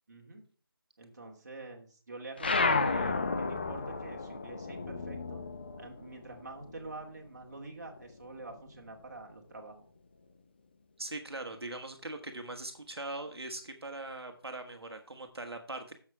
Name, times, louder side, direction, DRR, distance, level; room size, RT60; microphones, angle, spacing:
voice 1, 0.1-0.4 1.0-5.4 5.8-9.9, right 3 dB, 45° right, 1 dB, 2.3 m, -46 dB
sound 1, 2.4-7.3 7.6-9.0, left 3 dB, 25° left, 0.6 m, -33 dB
voice 2, 11.0-15.9, right 2 dB, 85° right, 5 dB, 1.5 m, -41 dB
7.5 x 7.5 x 4.6 m, 0.40 s
figure-of-eight pair, 170°, 13 cm